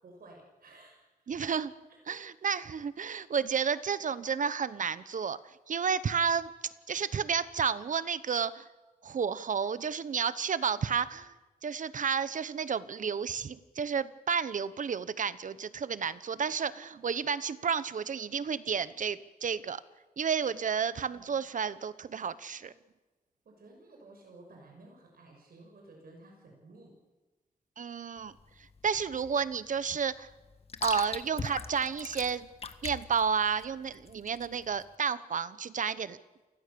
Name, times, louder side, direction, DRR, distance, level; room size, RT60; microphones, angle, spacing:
voice 1, 0.0-1.4 2.1-2.5 21.1-21.4 23.4-27.0, right 2 dB, 80° right, 1 dB, 6.3 m, -54 dB
voice 2, 1.3-1.7 2.1-5.4 5.7-6.5 6.9-8.6 9.0-11.3 11.6-19.8 20.2-22.7 27.8-28.3 28.8-30.3 30.8-32.5 32.8-36.2, right 6 dB, 60° right, 15 dB, 1.0 m, -31 dB
sound 1, 28.2-34.9, left 5 dB, 40° left, 1.5 m, -42 dB
29.0 x 21.0 x 7.0 m, 1.2 s
wide cardioid pair, 165°, 15 cm